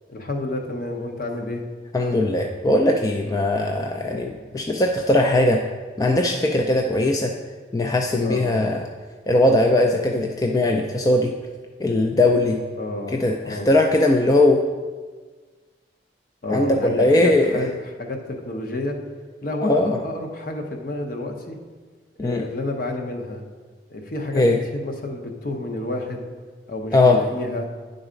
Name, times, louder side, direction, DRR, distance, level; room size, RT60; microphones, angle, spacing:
voice 1, 0.1-1.6 8.2-8.7 12.8-13.8 16.4-17.7 18.0-19.0 19.4-21.6 22.2-23.4 23.9-24.4 24.7-26.2 26.7-27.7, left 2 dB, 50° left, 2 dB, 0.9 m, -30 dB
voice 2, 1.9-5.6 6.0-7.3 7.7-8.8 9.3-11.3 11.8-12.6 13.1-14.6 16.5-17.6 19.6-20.0 22.2-22.4 24.3-24.6 26.9-27.2, left 1 dB, 20° left, 2 dB, 0.3 m, -19 dB
9.7 x 4.0 x 5.1 m, 1.4 s
head